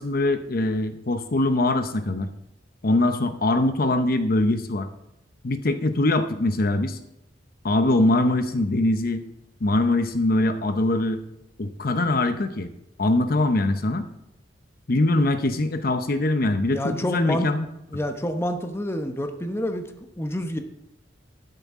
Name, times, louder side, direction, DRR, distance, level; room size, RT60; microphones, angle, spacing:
voice 1, 0.0-2.3 2.8-4.9 5.4-7.0 7.6-9.2 9.6-11.2 11.6-12.7 13.0-14.1 14.9-17.7, left 2 dB, 55° left, 9 dB, 0.8 m, -22 dB
voice 2, 16.7-17.5 17.9-19.8 20.2-20.6, equal, 15° left, 6 dB, 0.9 m, -27 dB
12.0 x 10.5 x 3.7 m, 0.85 s
head